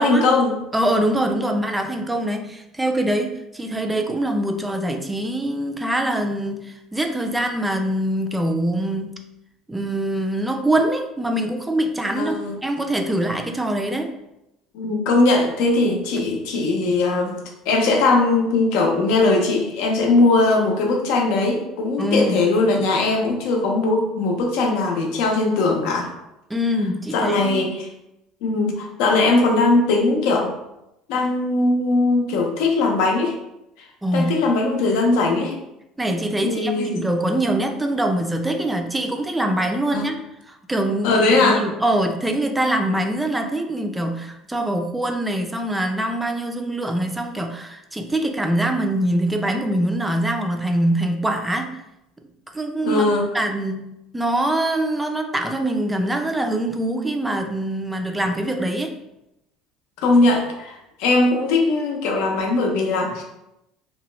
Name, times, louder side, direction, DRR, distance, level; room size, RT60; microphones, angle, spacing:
voice 1, 0.0-0.6 12.2-12.6 14.7-26.1 27.1-27.9 28.4-30.5 31.1-33.4 34.1-35.6 36.4-37.0 39.9-40.0 41.0-41.6 52.8-53.3 60.0-63.2, left 3 dB, 75° left, 1 dB, 0.6 m, -20 dB
voice 2, 0.7-9.2 9.7-14.1 22.0-22.4 26.5-27.7 34.0-34.3 36.0-40.2 40.5-51.8 52.5-53.0 53.3-58.9, right 1 dB, 10° right, 5 dB, 0.3 m, -23 dB
2.8 x 2.2 x 3.0 m, 0.88 s
supercardioid pair, 100°, 0 cm